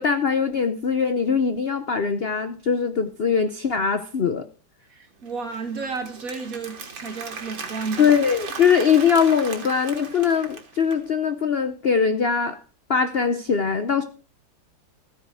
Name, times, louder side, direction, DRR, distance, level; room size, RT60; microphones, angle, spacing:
voice 1, 0.0-4.5 8.0-12.6 12.9-14.0, left 6 dB, 50° left, 0.7 m, -21 dB
voice 2, 4.8-8.2, right 4 dB, 45° right, 2.6 m, -32 dB
Applause, 5.2-11.0, right 5 dB, 80° right, 2.8 m, -37 dB
14.5 x 9.4 x 4.8 m
omnidirectional pair, 2.1 m